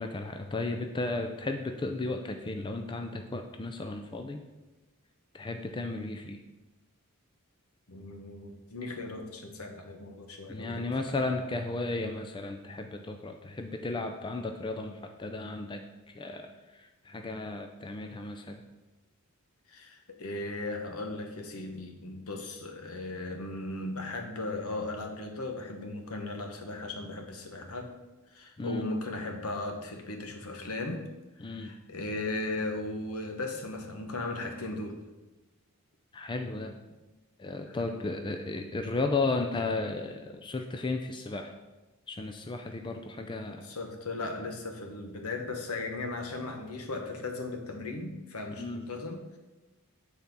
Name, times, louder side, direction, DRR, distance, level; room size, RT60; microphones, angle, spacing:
voice 1, 0.0-4.4 5.3-6.4 10.5-15.8 16.1-16.5 17.1-18.6 28.6-28.8 31.4-31.7 36.1-36.8 37.4-41.5 42.1-43.7 48.6-48.8, left 3 dB, 20° left, 5 dB, 0.4 m, -34 dB
voice 2, 7.9-11.2 19.7-27.9 28.3-31.0 31.4-35.0 37.6-38.1 42.6-42.7 43.5-49.4, left 2 dB, 75° left, 3 dB, 1.2 m, -37 dB
8.2 x 4.3 x 5.3 m, 1.1 s
head